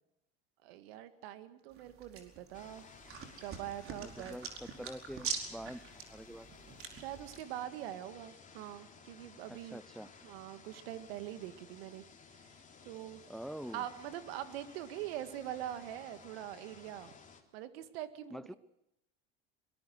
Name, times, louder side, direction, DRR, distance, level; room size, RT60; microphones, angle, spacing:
voice 1, 0.6-2.9 3.2-4.4 6.9-9.8 10.2-12.0 12.3-13.2 13.7-17.1 17.5-18.6, right 12 dB, 75° right, 11 dB, 2.1 m, -43 dB
sound 1, 1.7-7.4, right 6 dB, 45° right, 4.8 m, -44 dB
sound 2, 2.5-17.4, left 5 dB, 25° left, 3.6 m, -57 dB
voice 2, 4.0-5.8 6.1-6.5 9.5-10.1 13.3-13.9 18.3-18.5, equal, ahead, 18 dB, 0.7 m, -45 dB
23.0 x 21.5 x 6.4 m, 0.85 s
hypercardioid pair, 85°, 31 cm